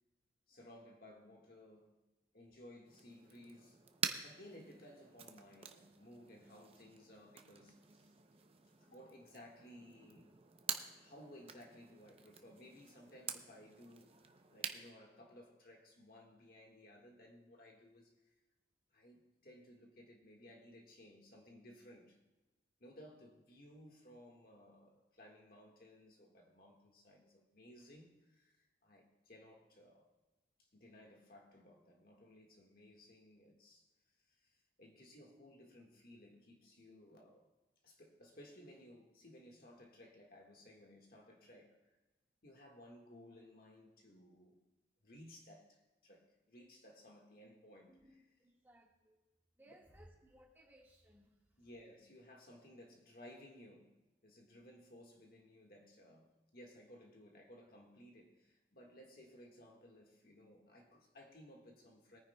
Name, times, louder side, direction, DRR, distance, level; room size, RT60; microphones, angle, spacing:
voice 1, 0.5-1.9 2.3-3.8 4.2-8.1 8.8-10.3 10.9-14.2 14.5-18.3 18.9-22.2 22.8-30.1 30.6-33.9 34.2-37.5 37.8-41.8 42.4-44.6 45.0-48.2 51.6-53.9 54.2-62.2, left 1 dB, 55° left, 1.7 m, -59 dB
sound 1, 2.8-14.9, right 7 dB, 30° right, 0.6 m, -47 dB
voice 2, 48.4-49.2 49.6-51.4, right 1 dB, 10° right, 1.7 m, -63 dB
21.0 x 9.8 x 2.3 m
head